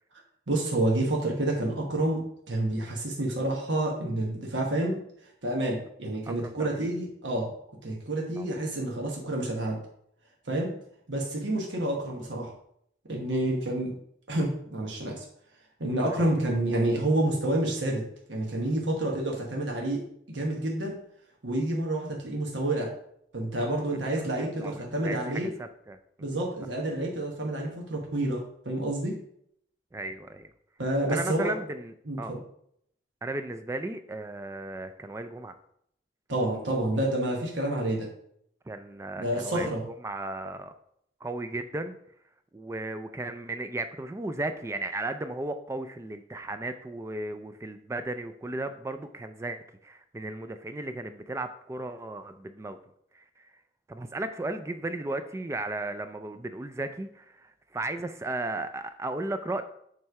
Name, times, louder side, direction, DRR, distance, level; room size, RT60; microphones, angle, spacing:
voice 1, 0.5-5.0 5.4-7.5 7.8-9.8 10.5-10.7 11.1-12.5 13.1-13.9 14.3-15.2 15.8-18.0 18.3-20.0 20.3-20.9 21.4-22.9 23.3-25.5 26.2-29.1 30.8-31.5 32.1-32.4 36.3-38.1 39.2-39.8, right 1 dB, 85° right, -1 dB, 1.2 m, -29 dB
voice 2, 6.3-6.9 8.4-8.5 13.4-13.6 16.0-16.2 23.6-26.4 29.9-30.5 31.1-32.3 33.2-35.6 38.7-40.7 41.2-42.0 42.5-52.8 53.1-53.6 53.9-59.6, right 2 dB, 15° right, 8 dB, 0.3 m, -35 dB
7.3 x 3.2 x 4.7 m, 0.71 s
head